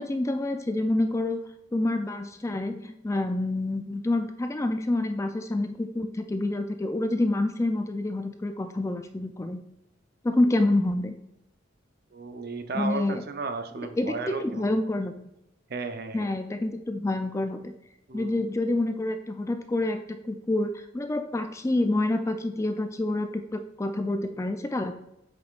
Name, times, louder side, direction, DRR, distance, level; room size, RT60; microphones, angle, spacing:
voice 1, 0.0-1.4 1.7-9.6 10.2-11.1 12.7-13.2 14.0-15.1 16.1-17.7 18.1-24.9, left 2 dB, 15° left, 8 dB, 0.3 m, -27 dB
voice 2, 12.1-14.7 15.7-16.3 18.1-18.3, right 4 dB, 50° right, 7 dB, 0.6 m, -34 dB
7.8 x 5.2 x 2.4 m, 0.87 s
head